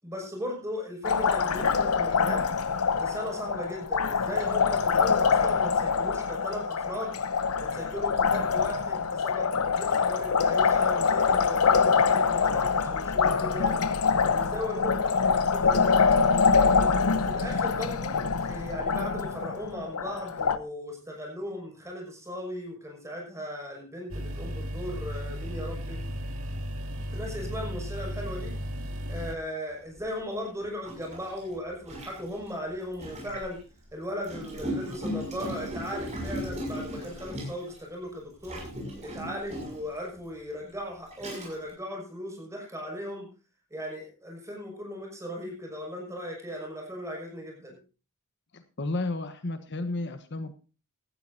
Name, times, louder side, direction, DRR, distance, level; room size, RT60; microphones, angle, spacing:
voice 1, 0.0-2.5 3.0-7.1 7.6-13.8 14.2-16.0 16.6-26.0 27.1-28.5 29.1-33.6 33.9-38.6 39.0-43.3 43.7-47.8, equal, 15° right, 0 dB, 5.9 m, -37 dB
Liquid, 1.0-20.6, left 5 dB, 80° left, 0.8 m, -25 dB
sound 1, 24.1-29.3, equal, 70° right, 2.1 m, -35 dB
Gurgling, 30.0-30.1 30.8-33.6 34.2-37.8 38.4-39.9 40.6-40.7 41.1-41.7, equal, 30° right, 6.5 m, -37 dB
voice 2, 48.5-50.5, left 2 dB, 55° left, 9 dB, 1.1 m, -32 dB
17.5 x 13.0 x 2.7 m, 0.33 s
head